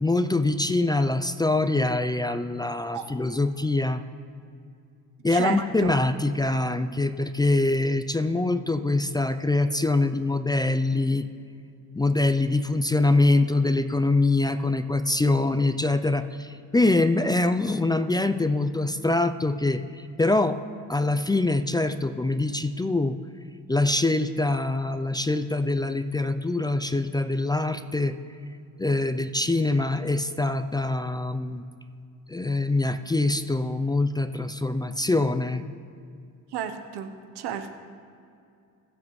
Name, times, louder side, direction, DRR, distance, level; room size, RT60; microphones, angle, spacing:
voice 1, 0.0-4.0 5.2-11.2 11.9-20.6 20.9-23.2 23.7-28.1 28.8-31.6 32.3-35.6, left 2 dB, 10° left, 10 dB, 0.4 m, -24 dB
voice 2, 5.3-5.9 36.5-37.1 37.4-37.7, right 9 dB, 85° right, 8 dB, 1.0 m, -32 dB
21.0 x 7.4 x 3.1 m, 2.4 s
cardioid pair, 90°, 38 cm